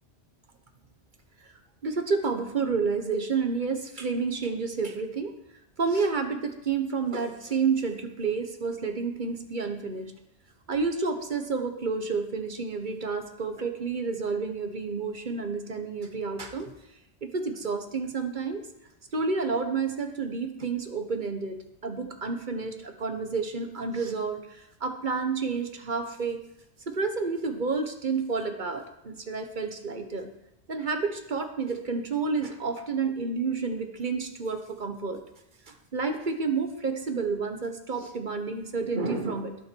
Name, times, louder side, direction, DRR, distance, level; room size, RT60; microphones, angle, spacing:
voice 1, 1.8-5.3 5.8-10.1 10.7-16.7 17.2-18.6 19.1-26.4 26.9-30.3 30.7-35.2 35.7-39.6, right 4 dB, 45° right, 6 dB, 1.3 m, -30 dB
19.0 x 6.4 x 4.6 m, 0.84 s
omnidirectional pair, 1.1 m